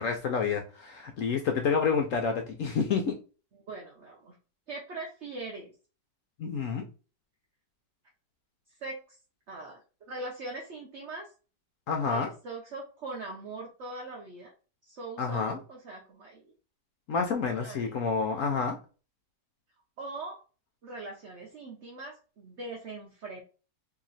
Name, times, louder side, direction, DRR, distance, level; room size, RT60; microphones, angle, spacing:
voice 1, 0.0-3.2 6.4-6.9 11.9-12.3 15.2-15.6 17.1-18.8, left 5 dB, 70° left, 3 dB, 0.8 m, -29 dB
voice 2, 3.7-4.3 4.7-5.7 8.8-9.0 9.5-9.8 10.1-11.3 12.0-14.5 14.8-16.4 17.5-18.0 20.0-20.4 20.8-23.4, right 2 dB, 50° right, -1 dB, 1.0 m, -41 dB
3.1 x 2.8 x 3.9 m, 0.35 s
omnidirectional pair, 1.9 m